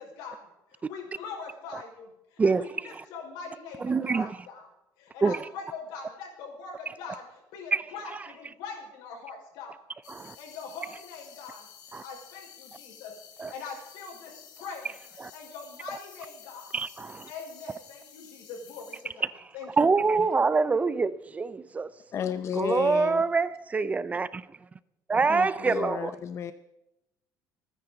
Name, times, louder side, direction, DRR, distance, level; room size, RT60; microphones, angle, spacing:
voice 1, 0.0-2.7 3.1-4.7 5.0-9.8 10.2-11.7 12.0-14.9 15.3-16.7 17.3-19.3 19.5-20.0, left 5 dB, 90° left, 5.1 m, -42 dB
voice 2, 2.4-3.0 3.8-4.4 5.2-5.5 7.7-7.8 8.1-8.2 10.1-10.3 11.9-12.0 13.4-13.5 15.2-15.3 16.7-17.3 19.2-19.5 19.8-21.9 22.6-24.4 25.1-26.1, right 4 dB, 20° right, 0.4 m, -26 dB
sound 1, 10.0-19.0, left 8 dB, 65° left, 2.7 m, -51 dB
voice 3, 22.1-23.2 25.3-26.5, left 8 dB, 40° left, 0.6 m, -32 dB
28.5 x 10.0 x 3.9 m
cardioid pair, 135°, 7 cm